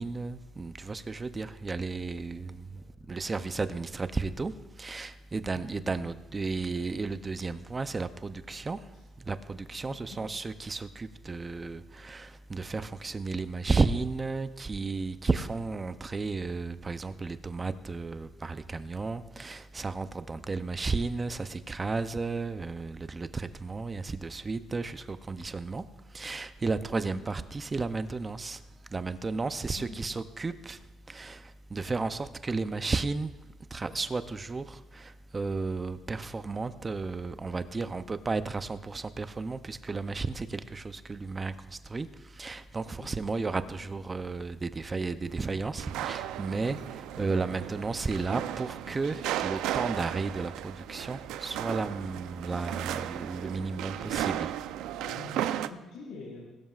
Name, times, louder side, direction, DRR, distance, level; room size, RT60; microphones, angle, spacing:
voice 1, 0.0-8.8 9.2-25.8 26.1-28.6 28.9-30.8 31.1-33.3 33.7-54.5, right 3 dB, 20° right, 0.5 m, -33 dB
voice 2, 2.5-3.4 5.5-5.9 8.9-9.0 9.9-10.2 29.8-30.2 37.7-38.0 43.0-43.3 43.6-43.9 47.0-47.3 53.9-54.3 55.0-56.4, left 3 dB, 75° left, 5.1 m, -48 dB
sound 1, 45.2-48.7, right 4 dB, 75° right, 4.2 m, -56 dB
sound 2, 45.8-55.7, right 12 dB, 90° right, 0.5 m, -35 dB
21.5 x 12.5 x 2.4 m
cardioid pair, 160°, 0 cm